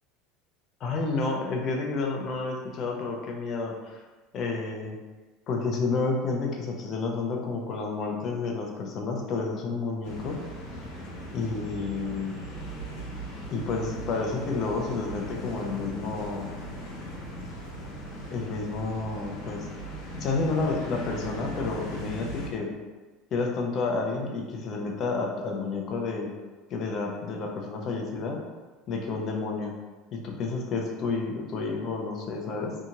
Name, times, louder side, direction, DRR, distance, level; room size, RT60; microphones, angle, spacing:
voice 1, 0.8-4.0 4.3-5.0 5.5-10.4 11.3-12.3 13.5-16.5 18.3-19.6 20.1-22.7 23.3-26.3 26.7-28.4 28.9-29.7 30.1-32.8, left 3 dB, 40° left, 1 dB, 0.5 m, -30 dB
sound 1, 10.0-22.5, right 1 dB, 90° left, 0.9 m, -38 dB
2.7 x 2.3 x 2.9 m, 1.2 s
supercardioid pair, 140°, 0 cm